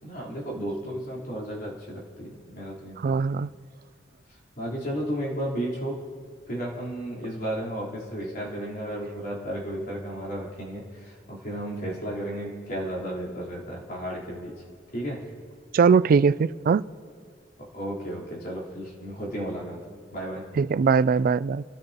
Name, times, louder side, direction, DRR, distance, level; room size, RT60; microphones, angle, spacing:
voice 1, 0.0-3.4 4.3-6.1 6.5-14.6 14.9-15.3 17.6-20.6, right 1 dB, 50° left, 3.8 m, -34 dB
voice 2, 3.0-3.5 15.7-16.8 20.6-21.6, right 5 dB, 50° right, 0.3 m, -21 dB
30.0 x 13.0 x 2.9 m
head